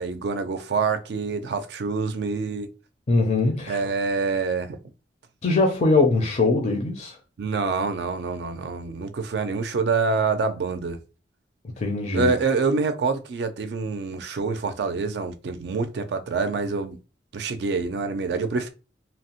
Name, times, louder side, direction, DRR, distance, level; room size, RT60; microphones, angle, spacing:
voice 1, 0.0-2.7 3.7-4.8 7.4-11.0 12.1-17.0 17.3-18.7, right 4 dB, 70° right, 0.4 m, -26 dB
voice 2, 3.1-3.8 5.4-7.2 11.8-12.3, left 3 dB, 40° left, 0.4 m, -21 dB
2.9 x 2.0 x 2.8 m
head